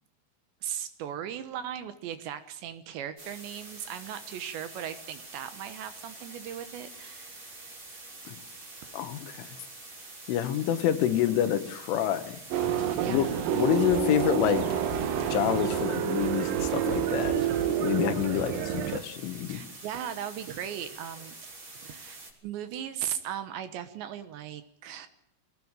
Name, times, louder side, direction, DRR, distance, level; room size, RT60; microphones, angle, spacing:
voice 1, 0.6-7.4 13.0-13.5 19.5-21.4 21.8-25.1, right 10 dB, 70° right, 11 dB, 3.2 m, -38 dB
sound 1, 3.2-22.3, right 2 dB, 25° right, 4.6 m, -46 dB
voice 2, 8.9-9.5 10.3-14.6 15.3-17.3 17.8-19.6, left 11 dB, 80° left, 10 dB, 3.8 m, -28 dB
sound 2, 12.5-17.9, left 4 dB, 40° left, 2.6 m, -42 dB
sound 3, 12.5-19.0, right 11 dB, 90° right, 2.0 m, -29 dB
23.5 x 18.0 x 8.9 m, 0.69 s
omnidirectional pair, 5.6 m